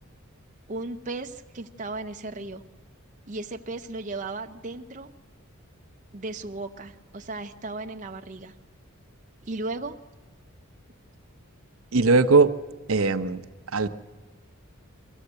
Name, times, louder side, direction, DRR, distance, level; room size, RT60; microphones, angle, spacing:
voice 1, 0.7-2.6 3.3-5.1 6.1-8.5 9.4-10.0, right 2 dB, 35° right, 5 dB, 0.6 m, -35 dB
voice 2, 11.9-12.5 12.9-13.4 13.7-13.9, right 3 dB, 75° right, 10 dB, 0.8 m, -19 dB
24.0 x 14.5 x 8.1 m, 1.2 s
head